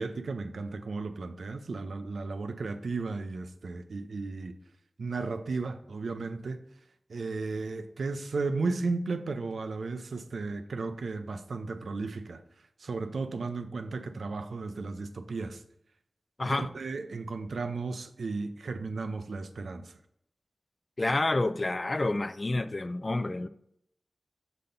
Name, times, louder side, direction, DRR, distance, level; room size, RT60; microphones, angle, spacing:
voice 1, 0.0-4.6 5.0-6.6 7.1-12.4 12.8-15.6 16.4-19.8, right 3 dB, 85° right, 0.4 m, -34 dB
voice 2, 16.4-16.7 21.0-23.5, left 2 dB, 45° left, 0.3 m, -29 dB
5.6 x 4.1 x 5.1 m
cardioid pair, 45°, 0 cm